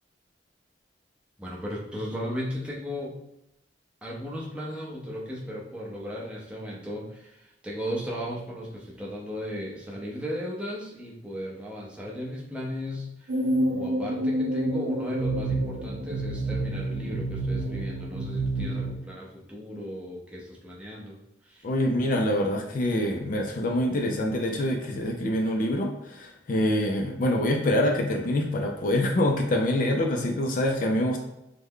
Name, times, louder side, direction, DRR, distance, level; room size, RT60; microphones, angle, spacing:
voice 1, 1.4-3.2 4.0-13.4 13.7-21.2 21.4-21.7, equal, 5° right, -4 dB, 0.6 m, -36 dB
sound 1, 13.3-19.0, right 1 dB, 65° right, 0.5 m, -28 dB
voice 2, 21.6-31.2, left 1 dB, 50° left, 2 dB, 0.4 m, -25 dB
3.2 x 2.1 x 3.6 m, 0.87 s
head